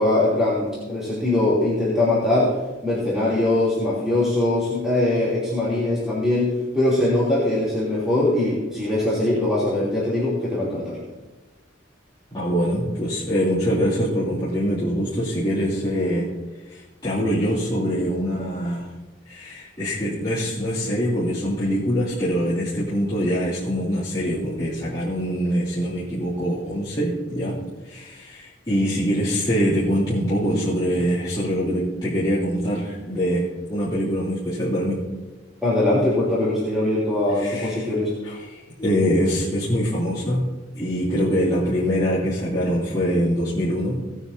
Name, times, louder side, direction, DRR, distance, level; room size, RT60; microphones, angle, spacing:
voice 1, 0.0-2.5 2.8-11.0 35.6-38.1, left 1 dB, 5° right, -10 dB, 3.2 m, -21 dB
voice 2, 12.3-16.3 16.7-18.9 19.2-27.6 27.8-35.0 37.4-37.9 38.2-40.5 40.7-44.0, equal, 25° left, -12 dB, 3.2 m, -24 dB
18.5 x 9.6 x 2.8 m, 1.2 s
head